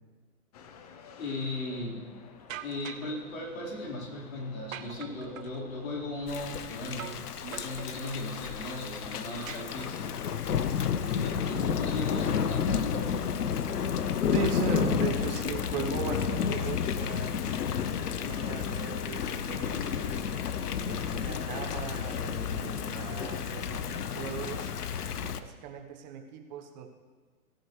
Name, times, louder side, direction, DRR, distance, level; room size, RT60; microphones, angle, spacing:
sound 1, 0.5-11.1, left 6 dB, 25° left, 0.6 m, -52 dB
voice 1, 1.2-2.1 2.6-7.1 7.4-10.1 11.1-13.1, left 2 dB, 65° left, -4 dB, 4.4 m, -37 dB
sound 2, 2.5-3.2 4.7-5.6 7.0-7.3 7.5-8.2 9.5-10.2, right 10 dB, 60° right, 0.7 m, -43 dB
Thunder / Rain, 6.3-25.4, left 7 dB, 90° left, 0.8 m, -31 dB
voice 2, 14.3-17.4 18.0-20.2 20.9-24.7 25.4-26.9, right 7 dB, 30° right, 5 dB, 1.1 m, -38 dB
17.0 x 10.5 x 3.2 m, 1.4 s
hypercardioid pair, 145°, 45 cm